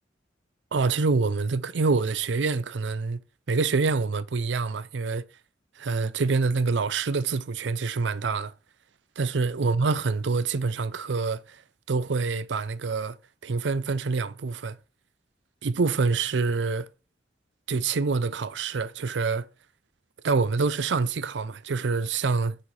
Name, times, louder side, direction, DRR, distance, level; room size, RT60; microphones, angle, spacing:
voice 1, 0.7-3.2 3.5-5.2 5.8-8.5 9.2-11.6 11.9-13.2 13.4-14.8 15.6-16.9 17.7-19.5 20.2-22.6, right 4 dB, 75° right, 0.5 m, -26 dB
6.5 x 4.8 x 5.4 m
head